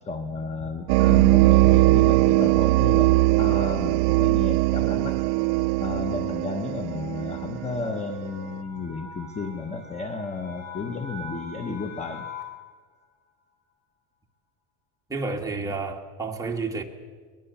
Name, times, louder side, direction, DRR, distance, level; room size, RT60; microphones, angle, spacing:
voice 1, 0.0-5.2 5.8-12.3, left 4 dB, 15° left, 8 dB, 1.0 m, -33 dB
sound 1, 0.6-12.7, left 3 dB, 60° left, 5.2 m, -45 dB
sound 2, 0.9-8.3, right 22 dB, 80° right, 0.6 m, -20 dB
voice 2, 15.1-16.8, right 3 dB, 5° right, 0 dB, 2.0 m, -30 dB
22.0 x 21.5 x 7.1 m, 1.5 s
cardioid pair, 145°, 46 cm